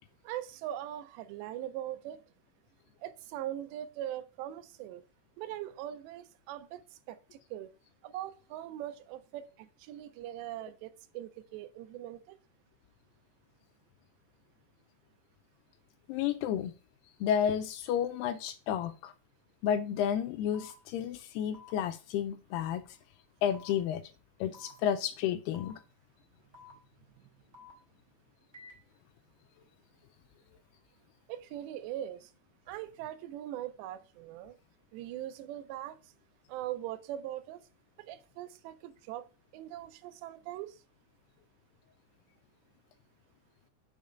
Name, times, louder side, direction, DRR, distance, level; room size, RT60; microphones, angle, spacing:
voice 1, 0.2-2.2 3.0-5.0 5.4-7.2 7.5-7.7 8.0-12.4 31.3-32.3 32.7-34.5 34.9-36.0 36.5-37.6 38.0-39.2 39.5-40.8, right 12 dB, 85° right, 2.9 m, -41 dB
voice 2, 16.1-16.7 17.2-19.1 19.6-22.8 23.4-24.0 24.4-25.8, left 9 dB, 80° left, 2.5 m, -31 dB
sound 1, 20.5-20.7 21.5-21.7 22.5-22.7 23.5-23.7 24.5-24.7 25.5-25.7 26.5-26.7 27.5-27.7 28.5-28.7, left 5 dB, 5° right, 2.6 m, -51 dB
6.2 x 5.1 x 6.7 m
omnidirectional pair, 4.9 m